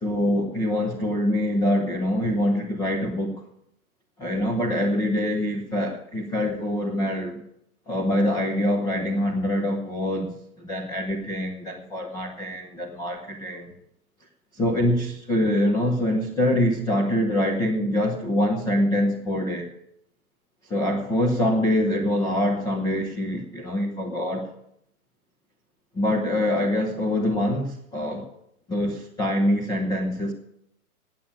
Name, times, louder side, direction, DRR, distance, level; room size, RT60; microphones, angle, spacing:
voice 1, 0.0-3.4 4.2-7.4 7.9-13.7 14.5-19.7 20.7-24.5 25.9-28.3 28.7-30.3, left 1 dB, 10° left, 1 dB, 0.7 m, -24 dB
9.2 x 9.0 x 9.9 m, 0.74 s
hypercardioid pair, 155°, 44 cm